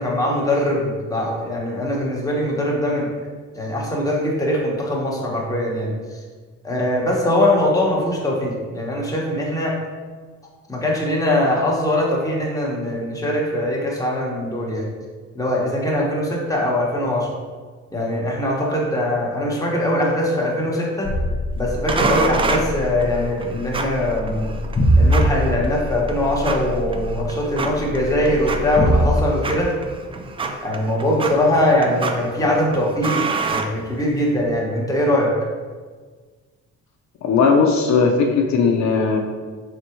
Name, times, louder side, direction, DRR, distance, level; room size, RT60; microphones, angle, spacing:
voice 1, 0.0-3.1 3.6-5.9 6.6-9.7 10.7-14.8 15.3-17.3 17.9-21.1 21.6-24.5 25.0-29.7 30.6-35.3, left 1 dB, 10° left, -3 dB, 1.1 m, -21 dB
sound 1, 21.0-29.2, equal, 25° left, 0.7 m, -23 dB
sound 2, 21.9-34.4, right 4 dB, 20° right, 0.3 m, -29 dB
voice 2, 37.2-39.2, left 5 dB, 65° left, 2 dB, 0.5 m, -17 dB
4.0 x 3.4 x 3.0 m, 1.5 s
cardioid pair, 90°, 30 cm